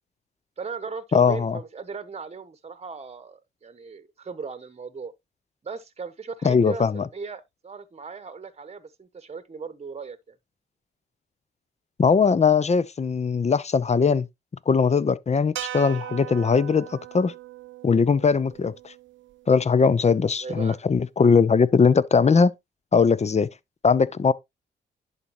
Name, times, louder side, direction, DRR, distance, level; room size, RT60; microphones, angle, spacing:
voice 1, 0.6-5.1 5.6-10.4 20.4-20.8, right 5 dB, 30° right, 1.0 m, -37 dB
voice 2, 1.1-1.6 6.4-7.1 12.0-14.3 14.7-17.3 17.8-18.9 19.5-22.5 22.9-23.5 23.8-24.3, left 5 dB, 30° left, 0.7 m, -20 dB
sound 1, 15.6-19.9, right 13 dB, 65° right, 0.6 m, -39 dB
11.0 x 4.0 x 3.0 m
supercardioid pair, 55°, 21 cm